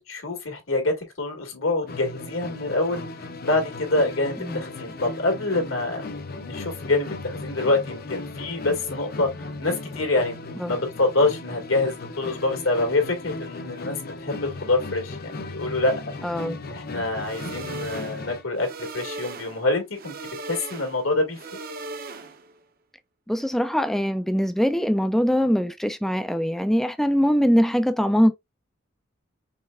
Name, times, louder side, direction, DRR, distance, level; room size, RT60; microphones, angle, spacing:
voice 1, 0.1-3.0 3.4-6.0 6.4-16.0 16.7-18.7 18.9-21.4, left 2 dB, 85° left, 1.8 m, -26 dB
Musical instrument, 1.9-18.5, left 2 dB, 45° left, 0.6 m, -36 dB
voice 2, 16.2-16.6 23.3-28.3, equal, ahead, 0.3 m, -22 dB
sound 1, 17.2-22.6, right 3 dB, 45° right, 0.7 m, -38 dB
5.3 x 3.3 x 2.4 m
head